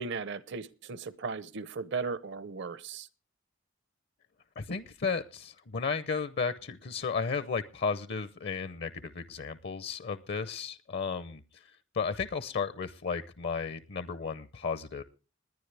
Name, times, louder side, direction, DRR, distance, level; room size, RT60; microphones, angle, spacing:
voice 1, 0.0-3.1, right 4 dB, 60° right, 16 dB, 0.8 m, -36 dB
voice 2, 4.6-15.0, left 5 dB, 55° left, 14 dB, 0.7 m, -34 dB
20.5 x 10.0 x 3.3 m, 0.33 s
head